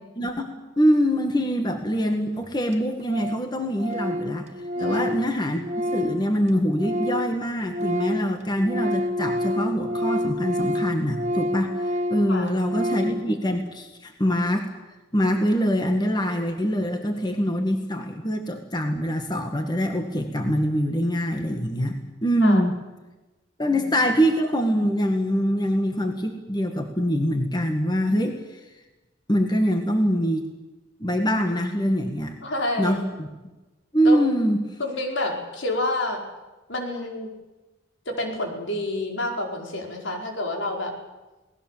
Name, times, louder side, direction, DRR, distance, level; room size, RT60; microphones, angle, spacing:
voice 1, 0.2-4.5 4.8-5.7 5.9-14.7 15.1-22.7 23.6-28.6 29.3-30.5 31.0-32.4 32.8-33.3 33.9-34.7, equal, 20° left, 4 dB, 1.9 m, -24 dB
Organ, 2.1-2.2 2.4-2.5 2.7-2.8 3.1-3.5 3.7-7.3 7.6-13.3, left 1 dB, 35° right, 1.3 m, -28 dB
voice 2, 4.8-5.1 12.3-12.5 22.4-22.8 23.7-24.1 32.4-33.0 34.0-34.2 34.8-36.2 36.7-37.3 38.0-40.9, left 1 dB, 75° left, 1 dB, 4.9 m, -29 dB
29.0 x 19.0 x 7.5 m, 1.1 s
head